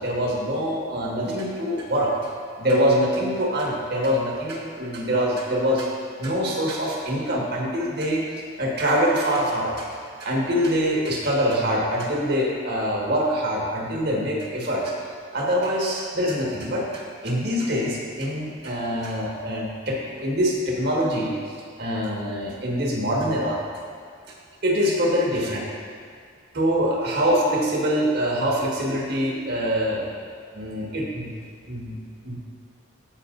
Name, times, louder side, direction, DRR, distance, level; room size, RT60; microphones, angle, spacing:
voice 1, 0.0-2.1 2.6-5.9 6.2-8.2 8.6-15.0 15.3-23.6 24.6-25.6 26.5-30.1 30.5-31.3 31.7-32.0 32.2-32.4, equal, 60° right, -3 dB, 1.7 m, -24 dB
15.5 x 5.9 x 2.6 m, 2.1 s
head